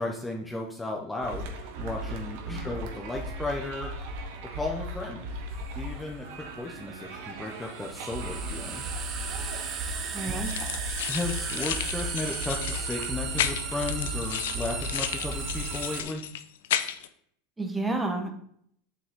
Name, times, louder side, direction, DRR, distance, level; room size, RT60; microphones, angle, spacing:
voice 1, 0.0-3.9 4.4-5.3 5.8-8.8 10.3-10.4 11.1-16.2, left 2 dB, 10° left, 0 dB, 0.9 m, -35 dB
sound 1, 1.2-16.0, right 1 dB, 65° right, 1.3 m, -37 dB
sound 2, 5.5-5.6 7.6-16.0, right 6 dB, 40° right, 1.1 m, -36 dB
voice 2, 10.1-10.7 17.6-18.3, right 2 dB, 10° right, 5 dB, 1.3 m, -31 dB
sound 3, 10.4-17.1, left 11 dB, 80° left, 0.6 m, -33 dB
7.5 x 6.1 x 3.8 m, 0.66 s
supercardioid pair, 115°, 0 cm